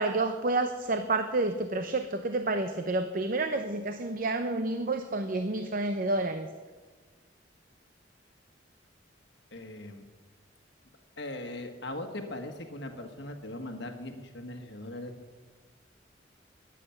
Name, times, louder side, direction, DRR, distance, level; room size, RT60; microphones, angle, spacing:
voice 1, 0.0-6.5, right 2 dB, 45° right, 8 dB, 0.7 m, -29 dB
voice 2, 9.5-10.0 11.2-15.1, left 1 dB, 65° left, 5 dB, 1.5 m, -39 dB
13.5 x 10.0 x 7.2 m, 1.4 s
head